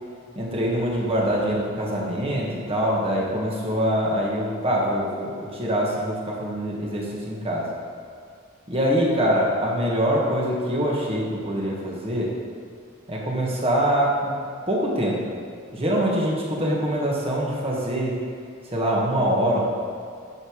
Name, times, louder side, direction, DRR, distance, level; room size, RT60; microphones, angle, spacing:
voice 1, 0.4-7.7 8.7-12.3 13.1-14.4 14.7-15.2 15.7-18.2 18.6-19.6, equal, 30° right, -4 dB, 1.9 m, -24 dB
10.5 x 7.0 x 4.9 m, 2.3 s
head